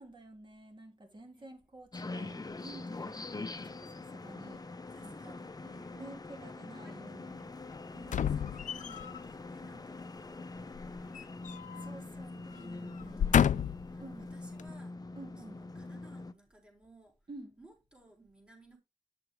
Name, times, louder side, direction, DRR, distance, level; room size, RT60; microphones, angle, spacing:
voice 1, 0.0-4.6 5.0-5.3 5.9-7.5 11.7-13.6 14.0-14.3 15.1-15.6 17.3-17.6, right 2 dB, 35° right, 2.7 m, -51 dB
voice 2, 1.2-1.6 4.9-7.3 7.8-11.4 11.7-12.4 12.7-14.9 15.2-18.8, right 2 dB, 5° right, 4.2 m, -60 dB
sound 1, 1.9-16.3, left 3 dB, 30° left, 0.7 m, -44 dB
sound 2, 8.0-9.2 10.7-11.9 12.2-12.4 13.0-13.9 14.6-14.7, left 8 dB, 70° left, 0.4 m, -30 dB
9.2 x 7.5 x 3.3 m
wide cardioid pair, 90°, 13 cm